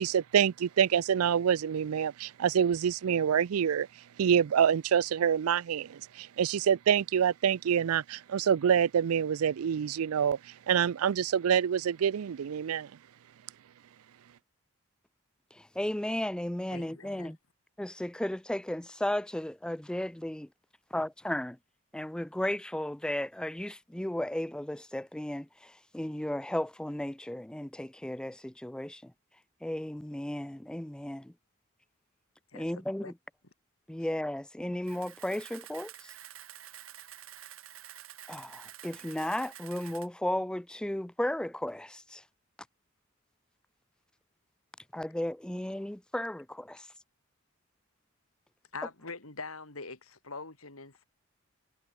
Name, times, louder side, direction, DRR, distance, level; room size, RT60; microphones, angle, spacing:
voice 1, 0.0-3.9 4.2-12.9, right 8 dB, 85° right, 0.4 m, -26 dB
voice 2, 15.5-17.4 17.8-20.5 20.9-21.6 21.9-29.0 29.6-31.3 32.5-33.1 33.9-36.1 38.3-42.2 44.9-46.9, left 1 dB, 5° left, 0.3 m, -34 dB
voice 3, 16.7-17.3 32.5-33.1 48.7-51.0, left 4 dB, 80° left, 4.5 m, -43 dB
Camera, 34.8-40.1, right 11 dB, 70° right, 2.3 m, -49 dB
head